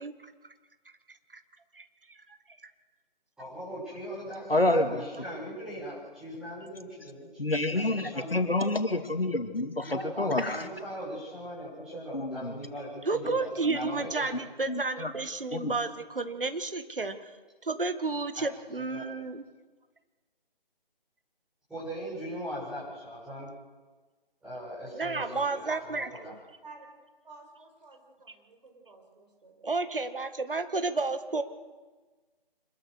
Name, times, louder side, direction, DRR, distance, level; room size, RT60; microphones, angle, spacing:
voice 1, 3.4-7.4 7.7-8.4 9.8-14.4 18.3-19.1 21.7-23.5 24.4-26.3, equal, ahead, -11 dB, 7.0 m, -40 dB
voice 2, 4.5-4.9 7.4-10.7 12.1-12.5 13.7-13.8 14.7-15.1 15.5-15.8, left 2 dB, 80° left, 7 dB, 2.6 m, -28 dB
voice 3, 13.1-17.3 17.6-19.4 25.0-26.1 29.6-31.4, right 3 dB, 65° right, 10 dB, 1.9 m, -31 dB
voice 4, 25.7-26.1 26.6-26.9 27.2-29.7, right 4 dB, 50° right, 2 dB, 5.7 m, -48 dB
25.5 x 21.5 x 6.4 m, 1.3 s
figure-of-eight pair, 150°, 29 cm